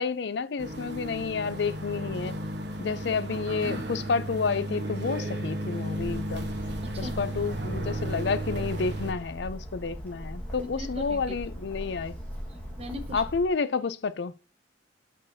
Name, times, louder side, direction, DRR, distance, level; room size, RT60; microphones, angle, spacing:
voice 1, 0.0-2.4 2.8-6.5 7.0-12.2 13.1-14.3, left 5 dB, 60° left, 0.5 m, -30 dB
sound 1, 0.6-9.1, right 1 dB, 60° right, 1.1 m, -34 dB
Bird, 5.9-13.5, equal, 10° left, 1.6 m, -39 dB
voice 2, 6.8-7.1 10.6-11.4 12.8-13.2, left 1 dB, 30° right, 1.1 m, -39 dB
6.6 x 5.3 x 2.7 m
head